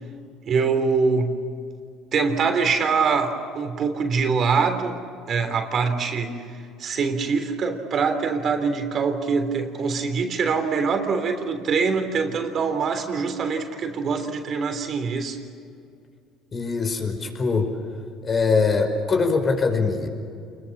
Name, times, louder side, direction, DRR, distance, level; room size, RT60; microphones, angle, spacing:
voice 1, 0.4-1.4 2.1-5.0 5.3-15.4, right 5 dB, 45° right, 6 dB, 3.4 m, -24 dB
voice 2, 16.5-17.7 18.2-20.1, left 4 dB, 35° left, 5 dB, 5.1 m, -22 dB
28.5 x 22.0 x 7.4 m, 2.4 s
supercardioid pair, 90°, 0 cm